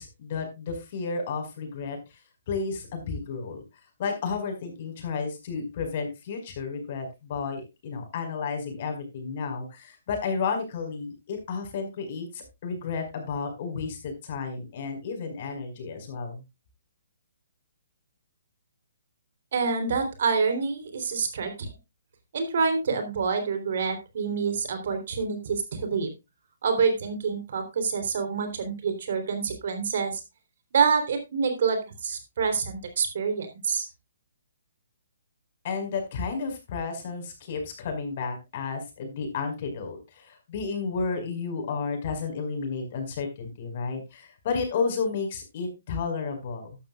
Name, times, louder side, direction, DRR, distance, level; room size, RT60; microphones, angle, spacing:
voice 1, 0.0-2.0 2.5-3.6 4.0-16.4 35.6-46.7, left 5 dB, 45° left, 5 dB, 5.1 m, -32 dB
voice 2, 19.5-21.7 22.3-26.1 26.6-30.2 30.7-33.9, right 5 dB, 55° right, 7 dB, 3.5 m, -27 dB
13.5 x 12.0 x 2.4 m, 0.24 s
figure-of-eight pair, 135°, 0 cm